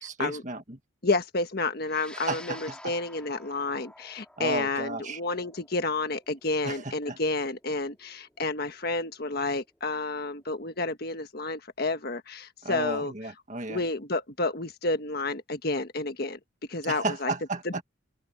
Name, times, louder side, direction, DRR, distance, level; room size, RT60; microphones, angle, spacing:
voice 1, 0.0-0.8 2.1-2.9 4.4-5.2 6.6-7.2 12.6-13.8 16.8-17.8, right 3 dB, 40° right, 1.7 m, -34 dB
voice 2, 1.0-13.1 13.7-16.4 16.7-17.3 17.6-17.8, left 3 dB, 50° left, 1.5 m, -30 dB
sound 1, 1.8-10.4, left 1 dB, 5° left, 5.7 m, -51 dB
open air
head